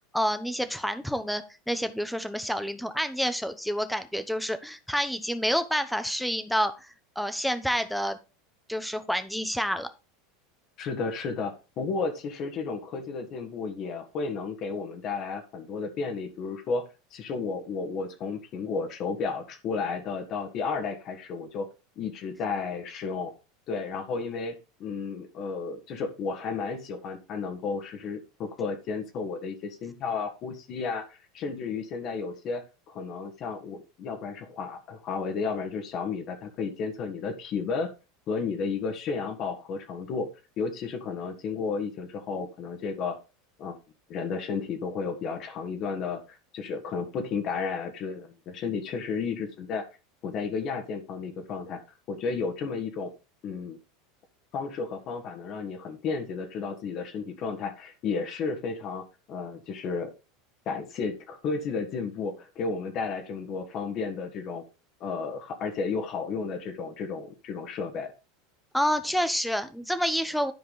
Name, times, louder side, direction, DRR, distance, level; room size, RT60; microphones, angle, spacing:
voice 1, 0.0-6.7 7.2-8.2 8.7-9.9 68.7-70.5, equal, ahead, 10 dB, 1.0 m, -28 dB
voice 2, 10.8-16.8 17.1-21.7 22.0-23.3 23.7-37.9 38.3-40.3 40.6-43.2 43.6-43.8 44.1-49.8 50.2-51.8 52.1-53.1 53.4-53.8 54.5-60.1 60.7-64.6 65.0-68.1, left 5 dB, 45° left, 5 dB, 1.7 m, -33 dB
11.0 x 4.8 x 3.9 m, 0.30 s
hypercardioid pair, 100°, 0 cm